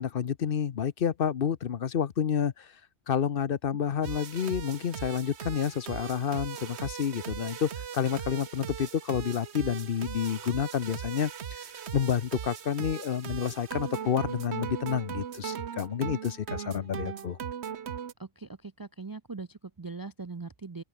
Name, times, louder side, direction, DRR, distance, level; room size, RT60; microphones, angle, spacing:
voice 1, 0.0-2.7 3.1-17.4, left 8 dB, 55° left, 0.9 m, -29 dB
sound 1, 4.0-18.1, right 8 dB, 75° right, 1.3 m, -39 dB
voice 2, 18.2-20.8, right 4 dB, 30° right, 0.4 m, -41 dB
open air
omnidirectional pair, 1.1 m